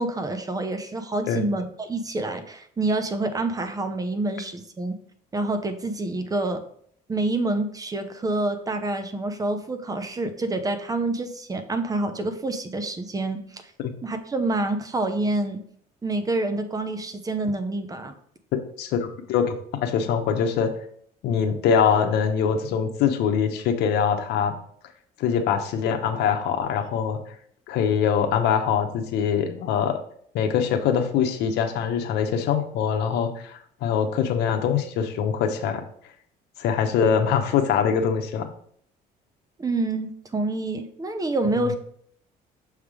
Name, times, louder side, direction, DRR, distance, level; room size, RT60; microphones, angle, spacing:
voice 1, 0.0-5.0 5.3-6.6 7.1-13.6 14.0-15.6 16.0-18.1 39.6-41.7, right 2 dB, 20° right, 8 dB, 0.8 m, -27 dB
voice 2, 18.8-19.5 19.8-20.7 21.2-24.5 25.2-27.2 27.7-30.0 30.3-35.8 36.6-38.5 41.6-41.7, left 7 dB, 85° left, 5 dB, 0.9 m, -23 dB
6.4 x 3.6 x 4.8 m, 0.63 s
cardioid pair, 110°, 17 cm